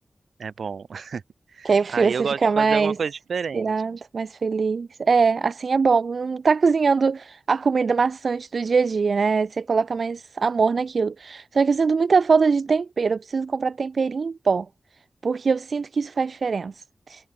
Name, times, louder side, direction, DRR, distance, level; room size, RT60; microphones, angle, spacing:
voice 1, 0.4-1.2 1.5-3.7, right 6 dB, 90° right, 1.0 m, -30 dB
voice 2, 1.6-3.0 3.5-14.7 15.2-17.3, right 5 dB, 70° right, 0.5 m, -22 dB
wide cardioid pair, 80°, 0 cm